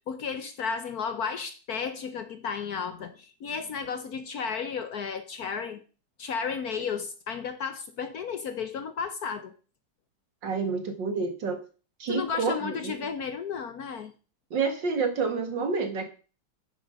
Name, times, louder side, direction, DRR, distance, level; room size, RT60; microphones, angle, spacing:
voice 1, 0.1-5.8 6.2-9.5 12.1-14.1, left 6 dB, 60° left, 1.2 m, -33 dB
voice 2, 10.4-11.6 12.0-12.9 14.5-16.0, right 4 dB, 65° right, 2.5 m, -28 dB
9.4 x 7.7 x 6.4 m
omnidirectional pair, 2.2 m